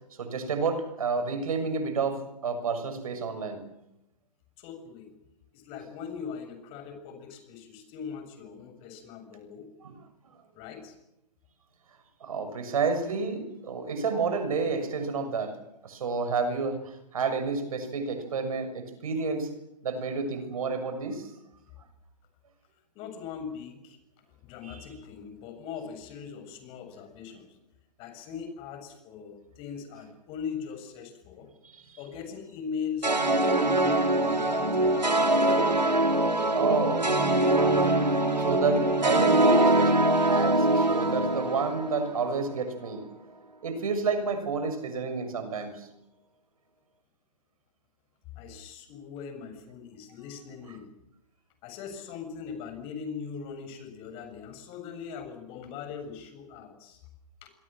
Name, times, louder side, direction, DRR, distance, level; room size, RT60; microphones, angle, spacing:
voice 1, 0.2-3.6 9.8-9.9 12.2-15.6 15.8-19.5 19.8-21.3 24.6-24.9 31.6-32.0 36.5-37.2 37.5-43.1 43.6-45.9, right 4 dB, 55° right, 8 dB, 6.6 m, -30 dB
voice 2, 4.6-5.1 5.5-9.7 10.5-11.0 23.0-24.0 24.4-27.5 28.0-31.5 32.0-35.6 48.4-50.9 51.6-57.0 57.4-57.5, left 6 dB, 25° left, 7 dB, 6.9 m, -40 dB
sound 1, 33.0-42.3, right 2 dB, 90° right, 4.2 m, -23 dB
27.0 x 23.0 x 7.5 m, 0.87 s
figure-of-eight pair, 135°, 21 cm